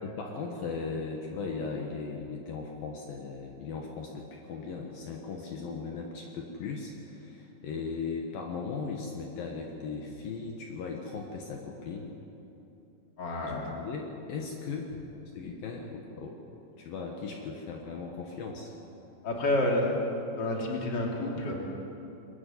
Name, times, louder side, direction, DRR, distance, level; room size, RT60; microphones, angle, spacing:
voice 1, 0.0-12.1 13.4-14.9 15.3-16.4 16.8-18.7, left 4 dB, 65° left, 1 dB, 2.9 m, -38 dB
voice 2, 13.2-13.7 19.2-20.0 20.4-21.5, left 1 dB, 30° left, -1 dB, 3.1 m, -29 dB
22.5 x 14.0 x 9.3 m, 2.9 s
omnidirectional pair, 4.6 m